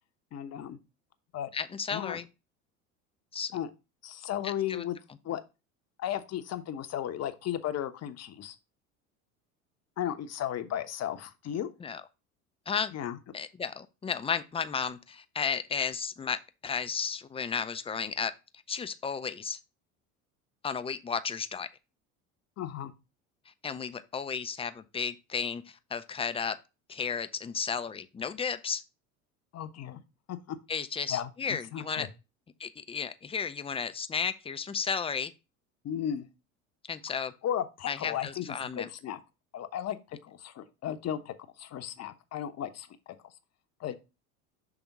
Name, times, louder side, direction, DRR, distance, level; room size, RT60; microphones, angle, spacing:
voice 1, 0.3-0.8 1.3-1.5 1.9-2.2 3.5-3.7 4.0-5.0 5.2-5.4 6.0-8.6 10.0-11.7 12.9-13.2 22.6-22.9 29.5-30.0 30.3-30.6 31.1-32.1 35.8-36.3 37.4-39.2 39.5-42.9 43.8-43.9, left 10 dB, 40° left, 0.9 m, -35 dB
voice 2, 1.5-2.3 3.3-3.5 4.4-4.8 11.8-12.0 12.7-12.9 13.3-16.4 16.6-18.3 18.7-19.6 20.6-21.7 23.6-26.6 26.9-28.8 30.7-32.1 32.6-35.3 36.9-37.3 37.9-38.9, left 6 dB, 15° left, 0.5 m, -33 dB
6.0 x 3.5 x 5.2 m
hypercardioid pair, 75°, 42 cm